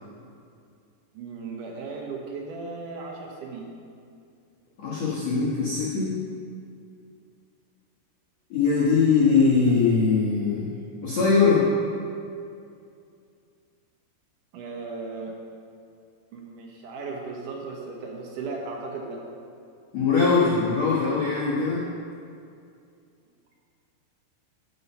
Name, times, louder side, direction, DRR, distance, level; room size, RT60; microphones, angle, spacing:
voice 1, 1.1-3.7 14.5-15.4 16.3-19.2, right 4 dB, 70° right, -1 dB, 2.0 m, -36 dB
voice 2, 4.8-6.1 8.5-10.8 11.0-11.7 19.9-21.9, left 5 dB, 60° left, -8 dB, 1.9 m, -21 dB
14.0 x 5.5 x 5.5 m, 2.4 s
omnidirectional pair, 4.8 m